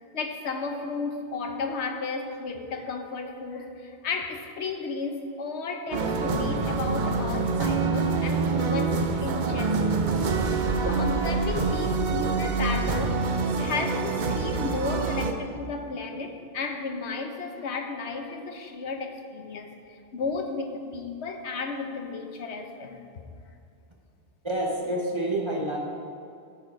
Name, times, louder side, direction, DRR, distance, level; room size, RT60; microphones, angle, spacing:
voice 1, 0.1-10.2 10.8-13.3 13.6-23.0, left 4 dB, 90° left, 5 dB, 1.1 m, -33 dB
sound 1, 5.9-15.3, right 4 dB, 50° right, 0.7 m, -26 dB
voice 2, 24.4-25.8, right 1 dB, 25° right, -1 dB, 1.1 m, -28 dB
13.0 x 4.8 x 4.8 m, 2.4 s
omnidirectional pair, 1.1 m